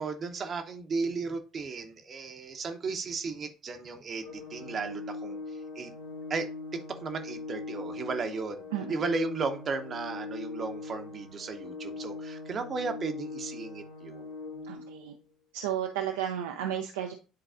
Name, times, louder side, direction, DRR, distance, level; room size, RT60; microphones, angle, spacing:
voice 1, 0.0-5.4 5.8-5.9 6.3-8.6 8.9-14.3, right 4 dB, 35° right, 0.8 m, -35 dB
Organ, 4.2-15.2, left 3 dB, 70° left, 1.2 m, -41 dB
voice 2, 8.7-9.0 14.6-15.1 15.5-17.1, right 10 dB, 70° right, 0.5 m, -33 dB
10.5 x 3.9 x 2.5 m
figure-of-eight pair, 60°, 0 cm